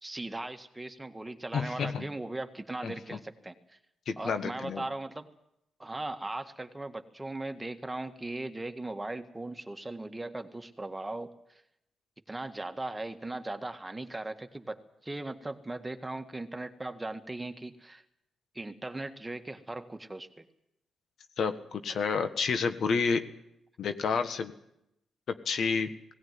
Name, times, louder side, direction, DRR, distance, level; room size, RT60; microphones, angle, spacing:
voice 1, 0.0-3.8 4.2-5.3 5.8-11.6 12.3-18.0 18.5-20.5 21.9-22.0, right 2 dB, 15° right, 7 dB, 1.8 m, -38 dB
voice 2, 1.5-2.1 2.8-2.9 4.1-4.8 21.4-23.3 23.8-24.5 25.4-26.0, left 5 dB, 65° left, 8 dB, 1.5 m, -29 dB
17.5 x 17.5 x 9.5 m, 0.82 s
supercardioid pair, 55°, 0 cm